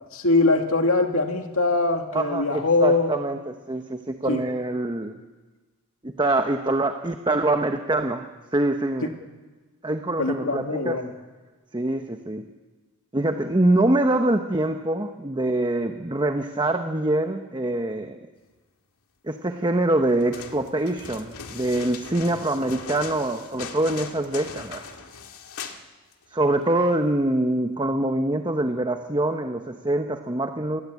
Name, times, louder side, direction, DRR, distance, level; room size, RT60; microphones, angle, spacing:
voice 1, 0.1-3.1 4.3-4.4 10.2-11.1, left 3 dB, 65° left, 4 dB, 2.4 m, -22 dB
voice 2, 2.1-5.2 6.0-8.2 8.5-9.1 9.8-11.0 11.7-12.5 13.1-18.2 19.2-24.8 26.3-30.8, right 1 dB, 20° right, 6 dB, 1.0 m, -24 dB
sound 1, 20.2-25.8 26.1-26.2, left 5 dB, 85° left, 2.0 m, -39 dB
27.0 x 19.5 x 8.4 m, 1.3 s
head